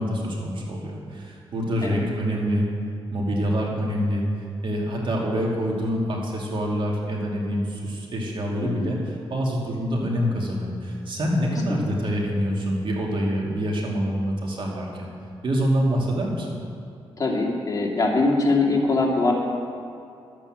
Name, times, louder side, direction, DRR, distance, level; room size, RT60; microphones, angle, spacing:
voice 1, 0.0-2.7 3.1-4.3 4.6-15.1 15.4-16.5, equal, 55° right, -2 dB, 2.6 m, -26 dB
voice 2, 8.6-8.9 17.2-19.3, left 3 dB, 35° left, -2 dB, 2.5 m, -22 dB
12.0 x 8.6 x 7.6 m, 2.5 s
cardioid pair, 95°, 10 cm